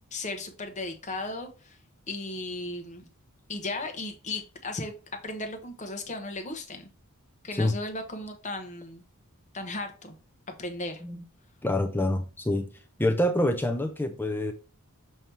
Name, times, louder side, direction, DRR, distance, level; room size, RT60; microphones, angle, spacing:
voice 1, 0.1-1.8 2.1-3.1 3.5-6.9 7.4-9.0 9.5-10.2 10.6-11.0, left 2 dB, 35° left, 1.1 m, -36 dB
voice 2, 11.6-12.7 13.0-14.5, left 1 dB, 10° left, 0.5 m, -26 dB
7.0 x 3.1 x 4.5 m
head